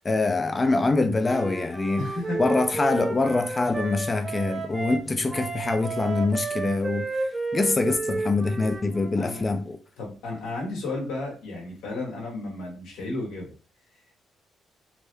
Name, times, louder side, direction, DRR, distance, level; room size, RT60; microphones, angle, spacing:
voice 1, 0.0-2.1 2.4-9.8, left 3 dB, 25° left, 0.3 m, -25 dB
Wind instrument woodwind instrument, 1.2-5.0 5.3-9.4, right 3 dB, 25° right, 0.8 m, -32 dB
voice 2, 2.0-2.4 9.2-9.4 10.0-13.5, left 2 dB, 90° left, 1.3 m, -33 dB
3.5 x 2.1 x 3.3 m
cardioid pair, 90°, 0 cm